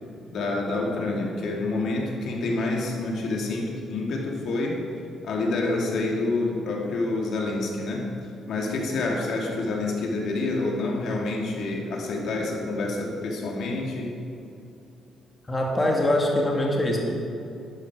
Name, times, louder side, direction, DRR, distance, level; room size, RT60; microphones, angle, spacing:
voice 1, 0.3-4.8 5.2-8.1 8.5-14.1, left 2 dB, 70° left, -1 dB, 2.5 m, -27 dB
voice 2, 15.5-17.0, left 1 dB, 20° left, -1 dB, 2.2 m, -23 dB
12.5 x 10.5 x 5.0 m, 2.7 s
cardioid pair, 100°, 0 cm